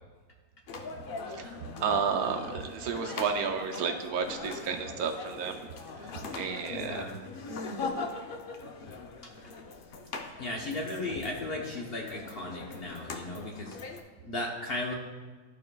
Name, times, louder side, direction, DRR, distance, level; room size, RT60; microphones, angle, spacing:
sound 1, 0.7-14.0, left 3 dB, 65° left, 0.5 m, -41 dB
voice 1, 1.3-5.7 6.0-7.2, right 6 dB, 75° right, 4 dB, 1.1 m, -32 dB
voice 2, 6.7-7.2 10.4-13.8 14.2-14.9, left 2 dB, 45° left, -1 dB, 0.9 m, -35 dB
13.5 x 4.7 x 2.3 m, 1.5 s
omnidirectional pair, 1.6 m